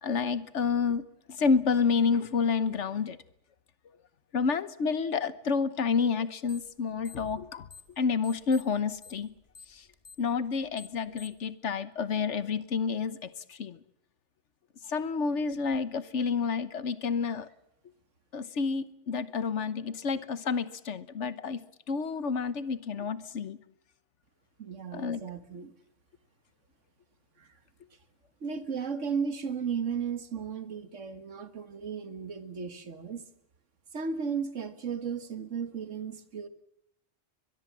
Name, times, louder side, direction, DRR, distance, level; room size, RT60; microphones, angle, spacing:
voice 1, 0.0-1.0 1.3-3.2 4.3-7.7 8.0-9.3 9.7-9.8 10.2-13.8 14.9-17.5 18.3-21.6 21.9-23.6 24.9-25.2, left 5 dB, 70° left, 14 dB, 1.4 m, -29 dB
sound 1, 6.5-6.8 7.0-8.0 8.2-11.5, left 4 dB, 30° left, 1.5 m, -50 dB
voice 2, 24.6-25.7 27.4-27.5 28.4-33.2 33.9-36.5, right 6 dB, 70° right, 10 dB, 1.9 m, -35 dB
22.5 x 21.5 x 7.4 m, 0.80 s
omnidirectional pair, 1.3 m